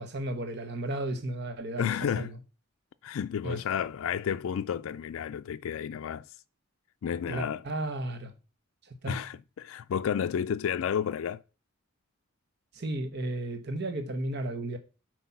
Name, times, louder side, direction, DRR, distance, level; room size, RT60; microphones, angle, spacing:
voice 1, 0.0-2.3 3.4-3.6 7.3-8.3 8.8-9.2 12.7-14.8, right 1 dB, 50° right, 0.9 m, -34 dB
voice 2, 1.8-2.4 3.0-6.3 7.0-7.6 9.1-11.4, left 8 dB, 80° left, 0.3 m, -31 dB
8.2 x 4.6 x 5.7 m
head